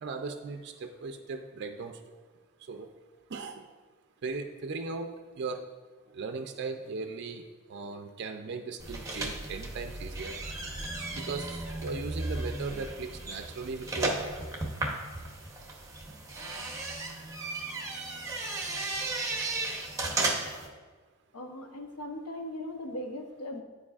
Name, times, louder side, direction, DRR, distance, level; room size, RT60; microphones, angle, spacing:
voice 1, 0.0-1.9 2.7-2.9 3.3-3.6 4.2-5.6 6.1-7.4 7.7-10.4 11.1-14.4, right 4 dB, 50° right, 6 dB, 0.4 m, -37 dB
sound 1, 8.8-20.7, right 2 dB, 15° right, 0.8 m, -35 dB
voice 2, 21.3-23.6, left 1 dB, 85° left, 4 dB, 0.8 m, -39 dB
11.0 x 4.6 x 2.4 m, 1.4 s
head